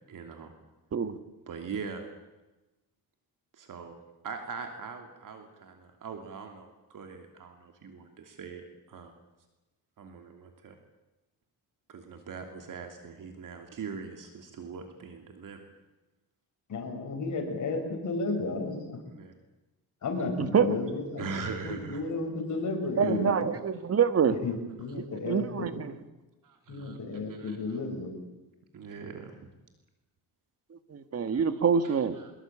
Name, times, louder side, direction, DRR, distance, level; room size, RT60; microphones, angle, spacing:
voice 1, 0.1-0.5 1.5-2.1 3.5-4.0 4.2-9.1 10.0-10.8 11.9-15.6 19.1-19.3 21.2-22.0 23.0-23.1 26.4-27.8 28.7-29.4 31.3-32.3, right 5 dB, 55° right, 5 dB, 3.0 m, -42 dB
voice 2, 16.7-19.0 20.0-21.4 21.6-23.3 24.3-25.7 26.7-28.1, left 3 dB, 50° left, 4 dB, 6.4 m, -33 dB
voice 3, 20.4-20.7 23.0-24.4 25.1-25.9 30.9-32.2, right 7 dB, 40° right, 11 dB, 1.9 m, -26 dB
24.5 x 22.0 x 8.8 m, 1.1 s
cardioid pair, 145°, 39 cm